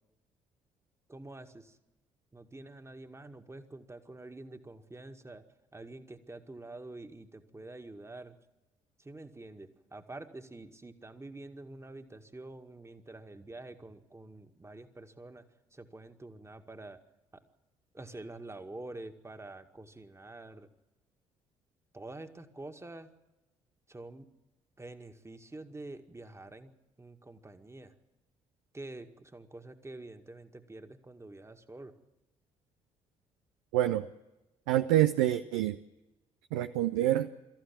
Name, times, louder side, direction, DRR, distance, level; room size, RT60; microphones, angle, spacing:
voice 1, 1.1-1.8 2.3-5.4 5.7-8.4 9.0-15.5 15.7-17.0 17.3-17.4 17.9-20.7 21.9-23.1 23.9-24.3 24.8-26.7 27.0-27.9 28.7-31.9, right 2 dB, 15° right, 6 dB, 2.0 m, -47 dB
voice 2, 33.7-34.1 34.7-35.8 36.5-37.3, right 13 dB, 70° right, 9 dB, 0.6 m, -26 dB
24.5 x 14.5 x 8.7 m, 1.0 s
figure-of-eight pair, 45°, 17 cm